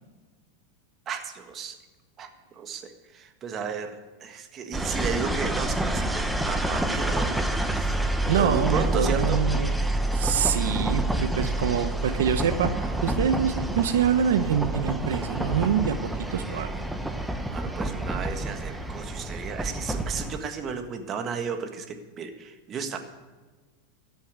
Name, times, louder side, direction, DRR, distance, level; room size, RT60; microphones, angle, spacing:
voice 1, 1.1-1.8 2.2-9.4 17.5-23.0, right 6 dB, 30° right, 6 dB, 1.6 m, -34 dB
sound 1, 4.7-20.4, right 1 dB, 5° right, 1.0 m, -28 dB
voice 2, 8.2-9.7 10.1-16.7, right 8 dB, 85° right, 9 dB, 0.9 m, -25 dB
13.0 x 7.1 x 9.5 m, 1.3 s
supercardioid pair, 125°, 0 cm